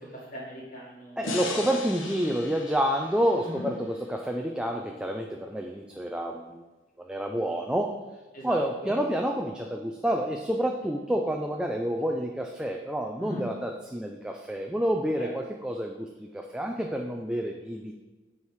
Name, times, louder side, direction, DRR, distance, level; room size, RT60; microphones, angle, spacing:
voice 1, 0.1-1.7 3.4-3.6 8.3-8.9 13.2-13.4 15.2-15.3, equal, 45° left, -5 dB, 2.5 m, -40 dB
sound 1, 1.2-4.5, left 3 dB, 85° left, 1.0 m, -38 dB
voice 2, 1.2-6.6 7.0-7.9 8.4-18.0, equal, 5° right, 2 dB, 0.3 m, -29 dB
8.2 x 4.9 x 4.6 m, 1.2 s
head